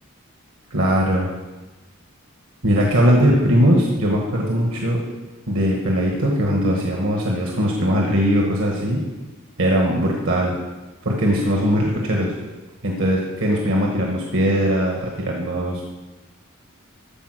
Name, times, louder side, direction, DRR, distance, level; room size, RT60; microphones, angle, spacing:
voice 1, 0.7-1.3 2.6-5.0 5.5-9.0 9.6-10.5 11.0-12.3 12.8-15.8, equal, 80° right, -1 dB, 1.5 m, -20 dB
14.5 x 4.9 x 6.2 m, 1.2 s
head